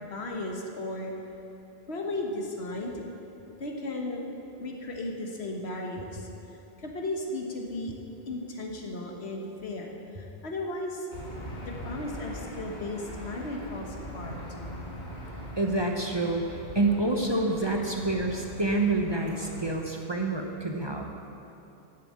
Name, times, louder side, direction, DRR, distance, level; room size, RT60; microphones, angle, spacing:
voice 1, 0.1-1.1 1.9-3.1 3.6-4.2 4.6-6.3 6.8-7.9 8.3-11.1 11.6-14.4, left 2 dB, 80° left, 1 dB, 1.5 m, -35 dB
Aircraft / Engine, 11.1-19.7, equal, 45° left, 2.1 m, -41 dB
voice 2, 15.6-21.1, right 2 dB, 30° right, 1 dB, 0.8 m, -28 dB
11.0 x 7.6 x 7.5 m, 2.8 s
omnidirectional pair, 1.1 m